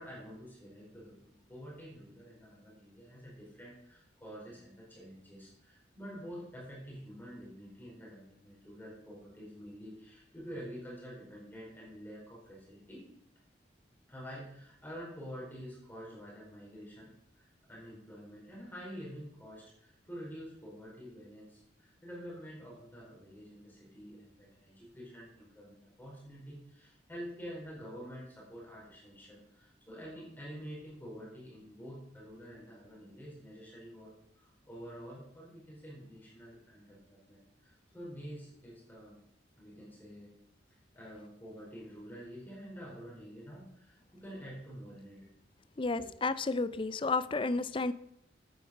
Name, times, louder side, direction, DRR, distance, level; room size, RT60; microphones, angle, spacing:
voice 1, 0.0-13.0 14.1-39.2 39.6-40.3 40.7-45.3 45.9-46.1 46.7-46.8, equal, 10° left, -5 dB, 4.5 m, -48 dB
voice 2, 45.8-47.9, left 3 dB, 30° left, 15 dB, 0.5 m, -31 dB
9.3 x 9.2 x 6.0 m, 0.72 s
head